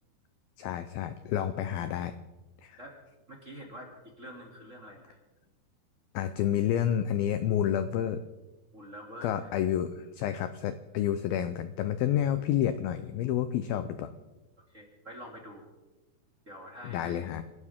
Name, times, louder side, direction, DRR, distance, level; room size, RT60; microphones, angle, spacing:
voice 1, 0.6-2.1 2.6-2.8 6.1-8.2 9.2-14.1 16.8-17.4, left 10 dB, 85° left, 11 dB, 2.1 m, -29 dB
voice 2, 3.3-5.2 8.7-9.5 14.6-15.7 16.4-17.4, equal, 20° right, -1 dB, 2.2 m, -46 dB
28.0 x 13.0 x 3.7 m, 1.1 s
omnidirectional pair, 5.2 m